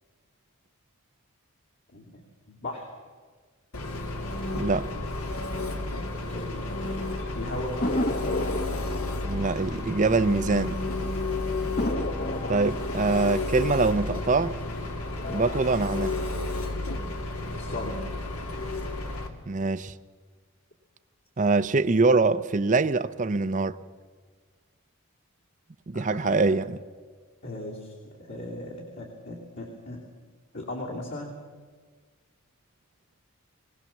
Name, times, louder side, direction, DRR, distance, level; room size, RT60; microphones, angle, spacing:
voice 1, 1.9-2.9 6.3-8.2 12.6-13.4 13.8-14.1 17.6-18.2 25.9-26.6 27.4-30.1 30.5-31.3, left 1 dB, 60° left, 2.9 m, -38 dB
Engine, 3.7-19.3, left 2 dB, 75° left, 2.2 m, -32 dB
voice 2, 4.5-4.9 9.2-10.8 12.5-14.5 15.3-16.1 19.5-19.9 21.4-23.8 25.9-26.8, right 3 dB, 35° right, 0.6 m, -24 dB
sound 1, 7.8-10.9 11.2-11.3 11.8-14.7 15.1-15.7, left 1 dB, 40° left, 1.1 m, -33 dB
21.0 x 18.5 x 7.2 m
head